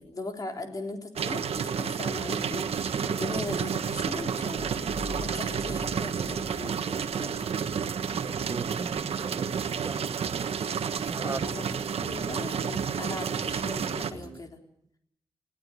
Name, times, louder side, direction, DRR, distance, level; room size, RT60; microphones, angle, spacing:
voice 1, 0.0-4.8 5.2-7.3 11.2-14.6, left 2 dB, 35° left, 3.6 m, -39 dB
sound 1, 1.2-14.1, right 7 dB, 85° right, 1.4 m, -30 dB
sound 2, 1.5-14.4, right 4 dB, 60° right, 1.8 m, -46 dB
sound 3, 4.5-7.3, left 4 dB, 5° left, 0.9 m, -43 dB
voice 2, 8.1-10.0 11.1-11.6, right 4 dB, 35° right, 1.2 m, -38 dB
20.5 x 17.5 x 9.7 m
wide cardioid pair, 145°, 10 cm